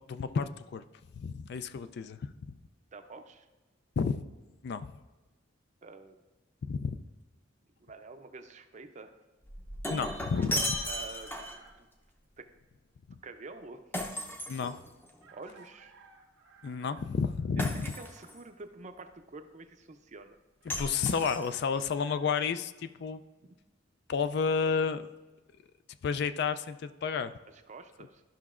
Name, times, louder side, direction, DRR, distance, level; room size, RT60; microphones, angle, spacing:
voice 1, 0.1-0.8 1.2-2.2 4.0-4.2 4.6-4.9 6.6-7.0 9.9-10.8 14.5-14.7 16.6-17.8 20.7-23.2 24.1-25.0 26.0-27.3, left 5 dB, 55° left, 12 dB, 0.3 m, -31 dB
voice 2, 2.9-3.5 5.8-6.2 7.8-9.2 10.8-11.4 11.8-11.9 12.4-12.5 13.2-13.8 15.3-15.9 17.6-20.4 27.5-28.2, right 3 dB, 35° right, 8 dB, 0.5 m, -47 dB
Shatter, 9.4-11.7 13.9-15.2 17.6-18.4 20.7-21.8, left 1 dB, 10° left, 0.6 m, -36 dB
Chicken rooster, 10.0-11.9 13.6-13.7 15.2-17.1 20.6-22.5, right 5 dB, 70° right, 0.9 m, -56 dB
13.0 x 5.7 x 2.4 m, 1.2 s
head